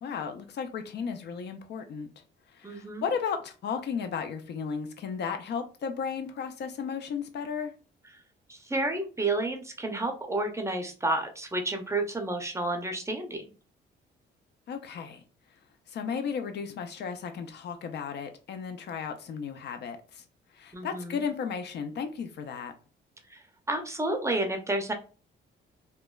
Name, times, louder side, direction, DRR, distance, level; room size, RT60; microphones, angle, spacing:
voice 1, 0.0-2.1 2.5-7.7 14.7-15.2 15.9-20.2 20.5-22.7, left 6 dB, 60° left, 0.4 m, -34 dB
voice 2, 2.6-3.0 8.5-13.4 20.7-21.2 23.3-23.4 23.7-24.9, right 2 dB, 15° right, 0.5 m, -30 dB
3.0 x 2.1 x 2.2 m
cardioid pair, 90°, 20 cm